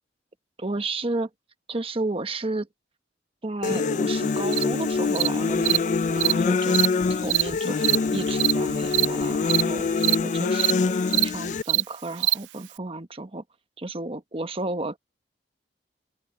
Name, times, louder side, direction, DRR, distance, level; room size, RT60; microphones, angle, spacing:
voice 1, 0.6-1.3 1.7-2.7 3.4-6.8 7.1-9.9 10.2-10.9 11.2-13.4 13.8-15.0, right 2 dB, 35° right, 1.1 m, -32 dB
sound 1, 3.6-11.6, left 4 dB, 45° left, 0.4 m, -25 dB
Cricket, 4.5-4.6 5.2-5.3 5.7-5.8 6.2-6.3 6.7-6.9 7.3-7.4 7.8-8.0 8.4-8.5 8.9-9.1 9.5-9.6 10.0-10.2 10.6-10.7 11.1-11.3 11.7-11.8 12.2-12.3, right 19 dB, 85° right, 0.3 m, -21 dB
open air
head